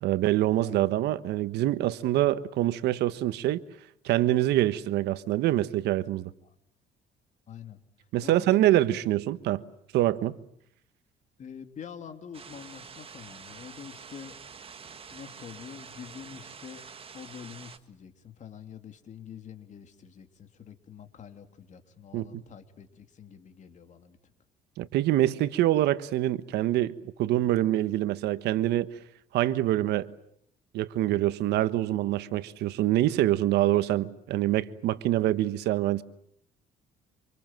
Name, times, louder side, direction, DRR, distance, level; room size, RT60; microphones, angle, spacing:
voice 1, 0.0-3.6 4.0-6.3 8.1-9.6 9.9-10.4 22.1-22.4 24.8-28.9 29.3-30.1 30.7-36.0, right 14 dB, 80° right, 1.3 m, -25 dB
voice 2, 0.6-0.9 6.4-6.5 7.5-7.8 8.2-9.0 11.4-14.4 15.1-16.8 17.1-24.2, left 7 dB, 45° left, 3.2 m, -46 dB
sound 1, 12.3-17.8, right 6 dB, 35° right, 1.7 m, -47 dB
27.5 x 27.0 x 7.7 m
cardioid pair, 110°, 17 cm